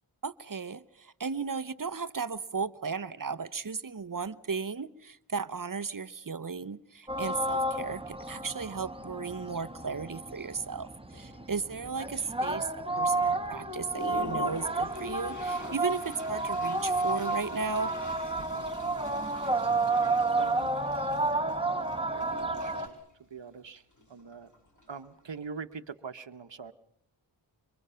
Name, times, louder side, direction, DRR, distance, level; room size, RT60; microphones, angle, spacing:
voice 1, 0.2-17.9, right 5 dB, 40° right, 15 dB, 0.9 m, -35 dB
sound 1, 7.1-22.9, right 2 dB, 10° right, 1.5 m, -31 dB
Toilet flush, 9.7-10.2 10.8-10.9 11.1-11.9 12.4-12.5 13.0-13.1 13.5-25.5, left 1 dB, 35° left, 6.6 m, -47 dB
voice 2, 20.4-20.8 22.0-23.0 23.3-23.8 24.1-24.5 24.9-26.7, right 5 dB, 60° right, 10 dB, 1.1 m, -43 dB
26.5 x 24.5 x 5.7 m, 0.72 s
wide cardioid pair, 60°, 48 cm